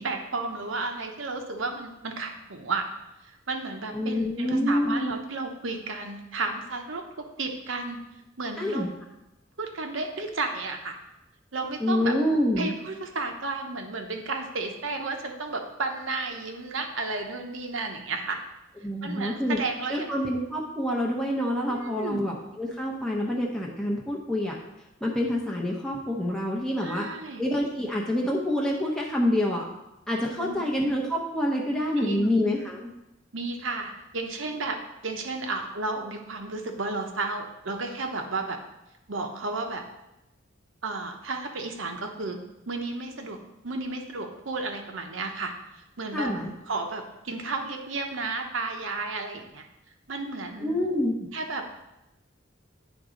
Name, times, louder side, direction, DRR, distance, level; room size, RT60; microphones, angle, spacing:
voice 1, 0.0-2.9 3.5-8.0 8.4-8.9 9.6-11.0 11.5-12.2 12.6-18.4 19.0-20.1 21.7-22.3 26.8-27.4 30.4-30.6 32.0-32.3 33.3-34.8 35.0-38.6 39.1-39.8 40.8-42.4 42.7-43.4 43.6-45.5 46.0-46.3 46.7-49.7 50.1-50.8 51.3-51.7, right 3 dB, 75° right, 4 dB, 0.9 m, -32 dB
voice 2, 3.9-5.2 8.6-8.9 11.8-12.7 18.8-19.6 19.9-24.5 25.0-27.1 27.4-29.6 30.1-32.9 46.1-46.5 50.6-51.1, left 1 dB, 5° left, -3 dB, 0.8 m, -27 dB
9.2 x 3.7 x 5.0 m, 0.94 s
head